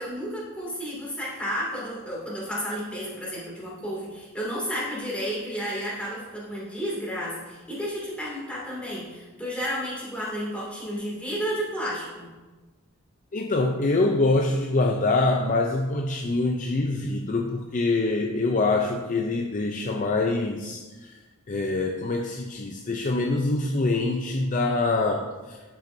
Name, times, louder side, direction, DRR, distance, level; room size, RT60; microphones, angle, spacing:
voice 1, 0.0-12.3, equal, 5° left, -6 dB, 2.4 m, -32 dB
voice 2, 13.3-21.2 21.5-25.6, left 2 dB, 35° left, 3 dB, 0.4 m, -25 dB
11.5 x 6.3 x 2.7 m, 1.3 s
head